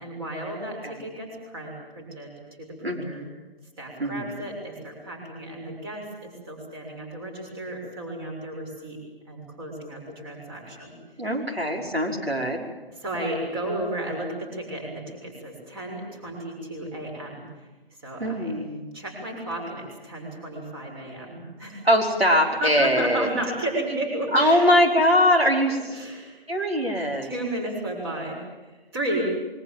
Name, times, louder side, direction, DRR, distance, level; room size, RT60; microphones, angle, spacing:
voice 1, 0.0-3.2 3.8-11.0 13.0-17.4 18.0-18.5 18.9-21.9 22.6-24.6 25.9-26.4 27.2-29.2, right 1 dB, 25° right, 2 dB, 6.7 m, -33 dB
voice 2, 0.6-0.9 2.8-3.3 4.0-4.4 11.2-12.7 18.2-18.9 21.8-23.3 24.3-25.8 26.5-27.3, equal, 90° right, 0 dB, 5.6 m, -22 dB
26.0 x 23.5 x 7.8 m, 1.2 s
figure-of-eight pair, 150°, 30 cm